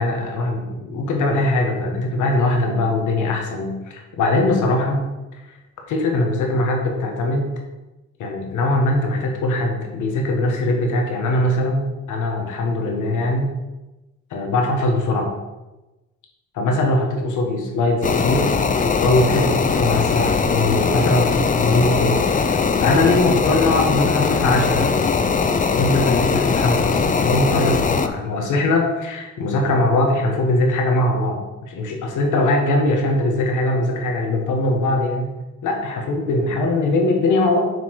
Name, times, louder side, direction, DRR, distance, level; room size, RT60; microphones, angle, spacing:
voice 1, 0.0-5.6 5.9-7.5 8.2-13.5 14.3-15.3 16.6-25.0 25.7-35.3 35.6-37.7, left 2 dB, 80° left, 2 dB, 1.6 m, -21 dB
sound 1, 18.0-28.1, left 5 dB, 25° left, 0.5 m, -20 dB
6.8 x 4.7 x 4.7 m, 1.1 s
cardioid pair, 90°, 30 cm